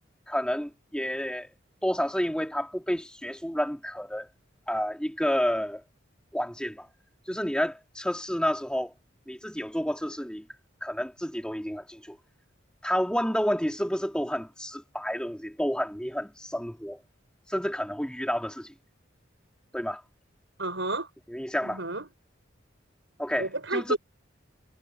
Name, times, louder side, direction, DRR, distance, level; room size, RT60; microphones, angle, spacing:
voice 1, 0.3-1.5 1.8-4.3 4.7-5.8 6.3-6.9 7.3-8.9 9.3-10.4 10.8-12.2 12.8-17.0 17.5-18.7 19.7-20.0 21.3-21.8 23.2-24.0, equal, 5° left, 2.1 m, -30 dB
voice 2, 20.6-21.1 21.6-22.0 23.4-24.0, right 2 dB, 70° right, 6.8 m, -30 dB
head